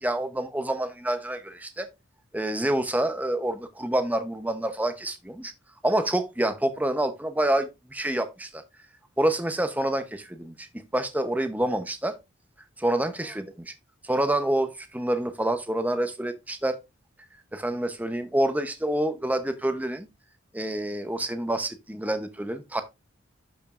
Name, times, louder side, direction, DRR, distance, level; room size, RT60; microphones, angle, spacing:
voice 1, 0.0-1.9 2.3-5.5 5.8-8.6 9.2-12.2 12.8-13.7 14.0-16.8 17.5-20.1 20.5-22.8, right 1 dB, 10° right, 0.7 m, -27 dB
12.0 x 5.2 x 2.5 m
head